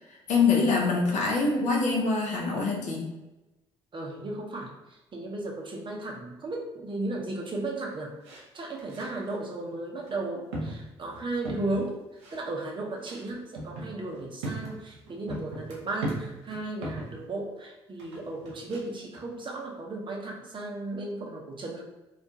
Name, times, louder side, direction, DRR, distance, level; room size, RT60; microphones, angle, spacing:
voice 1, 0.3-3.1, left 4 dB, 55° left, -1 dB, 0.6 m, -24 dB
voice 2, 3.9-12.0 12.3-21.8, right 2 dB, 35° right, -1 dB, 0.6 m, -35 dB
sound 1, 8.3-8.4 8.8-9.3 10.0-10.2 10.5-11.9 12.2-12.4 13.0-17.2 18.0-18.8 19.1-19.2, right 1 dB, 85° right, 0.5 m, -37 dB
2.3 x 2.2 x 2.6 m, 1.0 s
hypercardioid pair, 45°, 14 cm